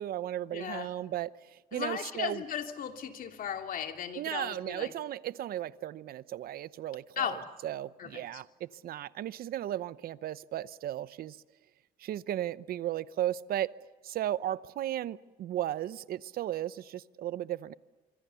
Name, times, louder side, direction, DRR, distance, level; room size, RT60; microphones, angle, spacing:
voice 1, 0.0-2.4 4.1-11.4 12.0-13.7 14.0-17.7, right 12 dB, 60° right, 17 dB, 0.8 m, -35 dB
voice 2, 0.5-0.9 1.7-4.9 7.2-7.4 8.0-8.4, left 8 dB, 55° left, 5 dB, 2.7 m, -36 dB
25.5 x 25.0 x 7.0 m, 1.3 s
cardioid pair, 110°, 17 cm